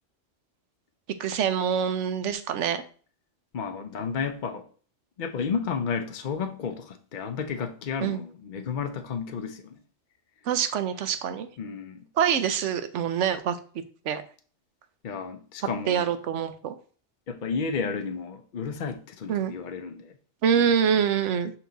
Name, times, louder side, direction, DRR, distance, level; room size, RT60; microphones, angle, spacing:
voice 1, 1.2-2.8 8.0-8.2 10.5-11.5 12.2-13.6 14.1-14.2 15.9-16.7 19.3-19.5 20.4-21.5, right 8 dB, 85° right, 1.0 m, -25 dB
voice 2, 3.5-4.7 5.2-9.8 11.6-12.1 15.0-16.1 17.3-20.1, left 5 dB, 50° left, 0.7 m, -32 dB
6.3 x 4.4 x 3.9 m
omnidirectional pair, 1.2 m